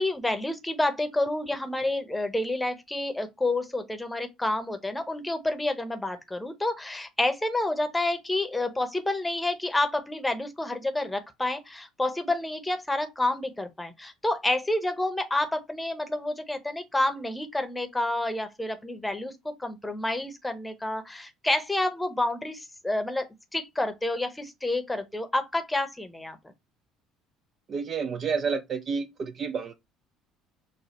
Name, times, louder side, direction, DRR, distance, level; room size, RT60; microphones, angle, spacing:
voice 1, 0.0-19.3 19.6-23.3 23.5-26.4, left 2 dB, 10° left, 0.9 m, -29 dB
voice 2, 27.7-29.7, right 5 dB, 40° right, 0.5 m, -30 dB
6.3 x 2.3 x 3.1 m
figure-of-eight pair, 55°, 0 cm